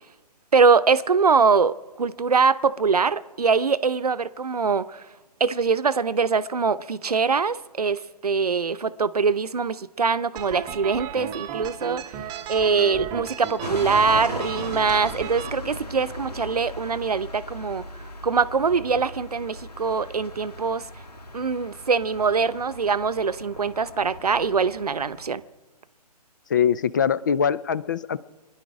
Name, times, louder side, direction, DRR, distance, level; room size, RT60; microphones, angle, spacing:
voice 1, 0.5-5.1 5.4-12.2 12.5-17.8 18.2-20.9 21.3-25.4, right 5 dB, 65° right, 0.8 m, -23 dB
sound 1, 10.4-15.5, right 9 dB, 15° right, 0.8 m, -35 dB
voice 2, 12.7-13.1 26.5-28.2, left 7 dB, 30° left, 0.4 m, -23 dB
sound 2, 13.6-25.3, left 1 dB, 70° left, 1.9 m, -38 dB
25.0 x 10.5 x 4.8 m
figure-of-eight pair, 135°, 21 cm